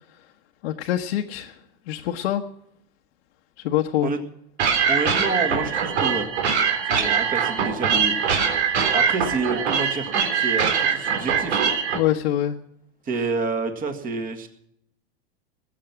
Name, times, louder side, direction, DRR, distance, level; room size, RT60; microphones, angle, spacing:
voice 1, 0.6-1.6 1.9-2.5 3.6-4.1 11.9-12.6, left 12 dB, 75° left, 2 dB, 1.2 m, -24 dB
sound 1, 4.6-12.0, right 6 dB, 80° right, 3.6 m, -22 dB
voice 2, 4.9-6.3 6.9-8.1 8.9-10.1 10.4-11.6 13.1-14.5, right 3 dB, 25° right, 7 dB, 1.9 m, -28 dB
20.5 x 7.6 x 6.0 m, 0.74 s
supercardioid pair, 140°, 33 cm